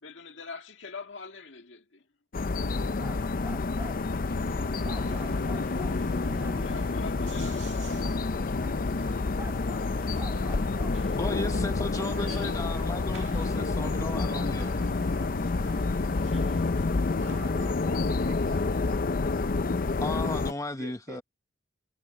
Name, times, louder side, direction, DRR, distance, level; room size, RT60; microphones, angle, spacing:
voice 1, 0.0-2.0 6.6-8.0, left 5 dB, 75° left, 1.9 m, -44 dB
sound 1, 2.3-20.5, left 3 dB, 50° left, 0.6 m, -28 dB
sound 2, 2.9-4.0 4.8-6.8 8.6-8.8 9.4-11.1, right 2 dB, 10° right, 0.6 m, -47 dB
sound 3, 4.3-17.4, right 3 dB, 85° right, 1.8 m, -48 dB
voice 2, 11.1-14.8 20.0-21.2, left 2 dB, 20° left, 0.9 m, -35 dB
voice 3, 17.2-19.0 20.8-21.2, right 3 dB, 65° right, 3.3 m, -47 dB
head